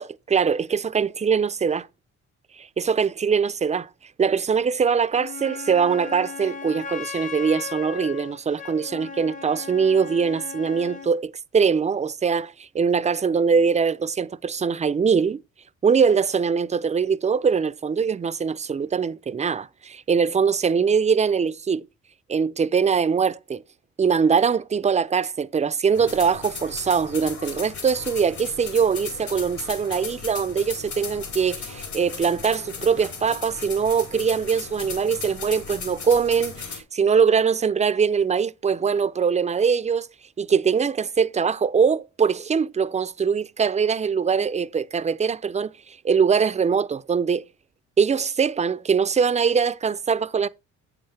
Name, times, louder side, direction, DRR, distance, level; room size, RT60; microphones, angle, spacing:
voice 1, 0.0-1.9 2.6-3.9 4.2-15.4 15.8-21.8 22.3-23.6 24.0-40.1 40.4-47.4 48.0-50.5, right 6 dB, 25° right, 0.4 m, -22 dB
Wind instrument woodwind instrument, 5.1-11.2, left 6 dB, 25° left, 0.8 m, -37 dB
sound 1, 25.9-36.8, left 5 dB, 70° left, 4.1 m, -36 dB
8.4 x 7.8 x 3.3 m
cardioid pair, 90°, 30 cm